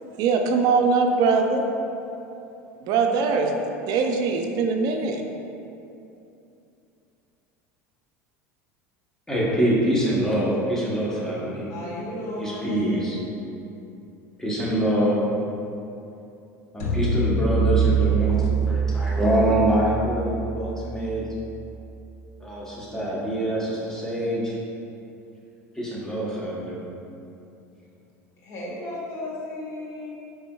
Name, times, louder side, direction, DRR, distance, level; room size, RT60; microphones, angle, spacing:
voice 1, 0.2-1.7 2.8-3.6 3.9-5.2, right 4 dB, 55° right, 4 dB, 0.4 m, -21 dB
voice 2, 9.3-11.7 12.4-13.2 14.4-15.2 16.7-21.2 22.4-24.6 25.7-26.8, right 1 dB, 5° left, -6 dB, 1.0 m, -25 dB
voice 3, 11.7-13.1 28.4-30.1, left 1 dB, 45° left, -5 dB, 1.2 m, -34 dB
sound 1, 16.8-21.1, right 5 dB, 75° left, 0.6 m, -24 dB
4.2 x 3.4 x 2.3 m, 2.8 s
hypercardioid pair, 85°, 8 cm